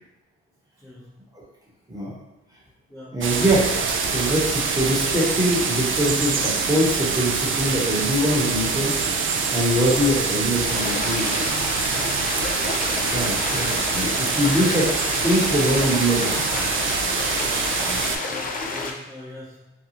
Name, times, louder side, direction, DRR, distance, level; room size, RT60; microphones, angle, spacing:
voice 1, 0.8-1.1 2.9-3.2 17.7-19.7, left 1 dB, 10° left, -10 dB, 0.8 m, -41 dB
voice 2, 3.1-3.7 4.0-8.9 9.5-11.3 13.1-16.6, equal, 10° right, -6 dB, 1.0 m, -23 dB
sound 1, 3.2-18.2, right 5 dB, 45° right, 0.4 m, -25 dB
sound 2, 10.7-18.9, left 3 dB, 30° left, 0.4 m, -30 dB
2.6 x 2.2 x 2.8 m, 0.99 s
cardioid pair, 90°, 30 cm